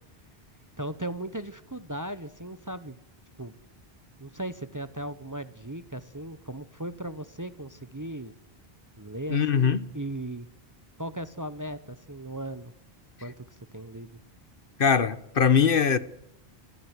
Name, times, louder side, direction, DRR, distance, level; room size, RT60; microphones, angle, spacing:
voice 1, 0.8-3.0 3.4-3.6 4.2-8.3 9.0-10.5 11.0-12.7 13.2-14.1, right 1 dB, 20° right, 0.8 m, -37 dB
voice 2, 9.3-9.8 14.8-16.0, left 7 dB, 60° left, 1.2 m, -21 dB
25.5 x 14.5 x 8.0 m
omnidirectional pair, 1.1 m